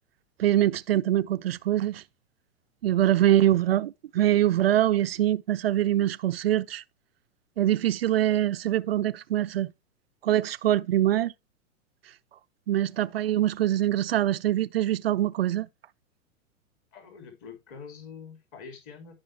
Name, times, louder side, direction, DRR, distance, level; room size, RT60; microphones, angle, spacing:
voice 1, 0.4-2.0 2.8-6.8 7.6-9.7 10.2-11.3 12.7-15.7, right 12 dB, 45° right, 0.5 m, -24 dB
voice 2, 16.9-19.1, left 6 dB, 30° left, 2.9 m, -45 dB
13.0 x 5.5 x 3.3 m
figure-of-eight pair, 105°, 43 cm